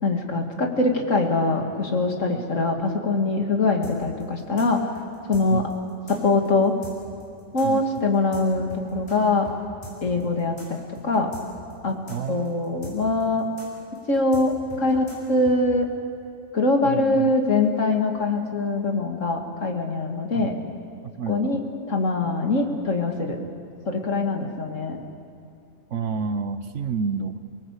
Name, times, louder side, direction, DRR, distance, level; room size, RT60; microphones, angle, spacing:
voice 1, 0.0-4.9 5.3-5.6 6.1-6.7 7.5-9.5 10.0-10.8 11.0-11.3 11.8-12.0 12.3-13.5 14.1-15.9 16.5-20.5 21.3-21.6 21.9-23.4 23.9-25.0, left 2 dB, 60° left, 3 dB, 2.5 m, -23 dB
sound 1, 3.8-9.2 9.4-9.6 9.8-15.6, equal, 25° left, 6.7 m, -42 dB
voice 2, 7.6-8.0 10.1-10.3 12.1-13.0 16.8-17.3 20.3-20.5 21.0-21.6 23.4-23.5 25.9-27.4, right 5 dB, 60° right, 10 dB, 1.2 m, -30 dB
28.5 x 18.5 x 8.2 m, 2.5 s
omnidirectional pair, 1.5 m